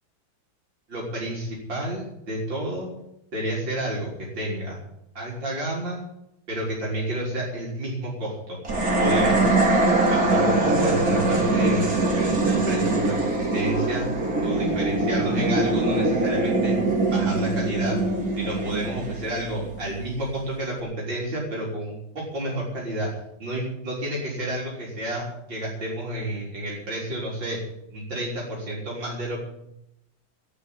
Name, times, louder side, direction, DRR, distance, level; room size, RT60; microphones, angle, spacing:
voice 1, 0.9-2.9 3.3-4.1 4.4-4.8 5.1-6.0 6.5-8.6 9.0-9.5 10.1-14.1 14.4-16.8 17.1-18.0 18.4-23.1 23.4-27.6 27.9-29.4, right 1 dB, 70° right, -5 dB, 4.6 m, -30 dB
sound 1, 8.7-20.0, right 2 dB, 50° right, 3.9 m, -23 dB
13.5 x 9.0 x 9.9 m, 0.82 s
omnidirectional pair, 2.1 m